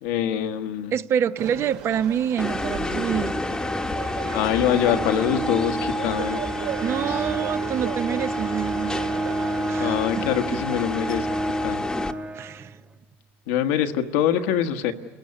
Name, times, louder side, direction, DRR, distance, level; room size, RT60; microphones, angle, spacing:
voice 1, 0.0-0.9 4.3-6.4 7.1-7.2 9.8-11.3 11.6-11.8 13.5-14.9, left 10 dB, 85° left, 1.3 m, -24 dB
voice 2, 0.9-3.4 6.8-9.0 9.5-10.3 12.4-12.8, right 9 dB, 45° right, 0.7 m, -27 dB
sound 1, 1.4-11.0, right 8 dB, 85° right, 2.7 m, -38 dB
sound 2, 2.4-12.1, left 2 dB, 10° left, 1.1 m, -30 dB
Bowed string instrument, 4.8-13.0, right 3 dB, 25° right, 1.2 m, -30 dB
28.5 x 16.0 x 9.8 m
supercardioid pair, 105°, 6 cm